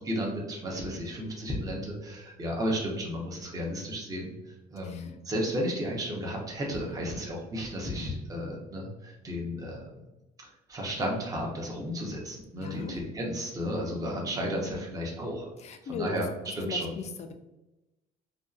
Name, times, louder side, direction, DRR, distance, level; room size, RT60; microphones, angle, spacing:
voice 1, 0.0-4.3 4.7-9.9 10.7-15.5 16.0-16.3 16.5-16.9, equal, 20° right, -2 dB, 0.6 m, -33 dB
voice 2, 4.8-5.2 6.8-7.2 12.6-13.0 14.4-14.8 15.6-16.2 16.7-17.3, left 4 dB, 40° left, 6 dB, 0.4 m, -39 dB
2.6 x 2.3 x 2.3 m, 0.99 s
cardioid pair, 110°, 17 cm